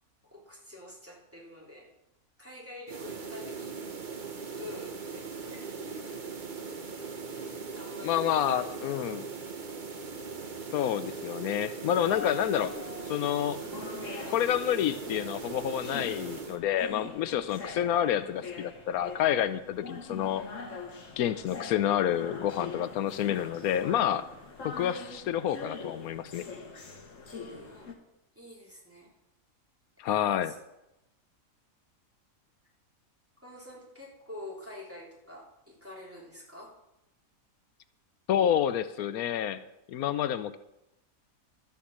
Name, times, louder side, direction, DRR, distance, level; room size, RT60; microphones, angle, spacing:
voice 1, 0.3-1.9 2.4-4.0 4.5-6.3 7.4-8.7 10.2-10.4 27.3-27.9 28.3-29.1 30.0-30.6 33.4-36.7, left 1 dB, 10° right, -4 dB, 3.3 m, -47 dB
sound 1, 2.9-16.6, right 5 dB, 35° right, 1.1 m, -40 dB
voice 2, 8.0-9.3 10.7-12.7 13.1-13.6 14.3-20.4 21.2-24.3 24.6-26.5 30.0-30.5 38.3-39.6 39.9-40.6, left 10 dB, 85° left, 13 dB, 1.1 m, -28 dB
sound 2, 11.9-27.9, left 4 dB, 60° left, 1.8 m, -44 dB
13.0 x 7.0 x 7.3 m, 0.90 s
omnidirectional pair, 1.5 m